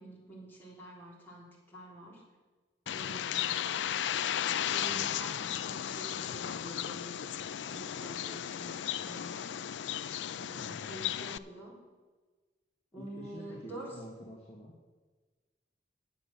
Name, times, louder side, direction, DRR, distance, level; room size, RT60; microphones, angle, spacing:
voice 1, 0.0-2.2 2.9-4.2 4.7-7.2 7.7-9.5 10.3-11.8 12.9-13.9, right 1 dB, 10° left, -6 dB, 3.9 m, -48 dB
Bird, 2.9-11.4, left 10 dB, 85° left, 0.4 m, -35 dB
voice 2, 13.0-14.7, equal, 35° left, -4 dB, 1.8 m, -47 dB
9.8 x 7.9 x 7.3 m, 1.3 s
head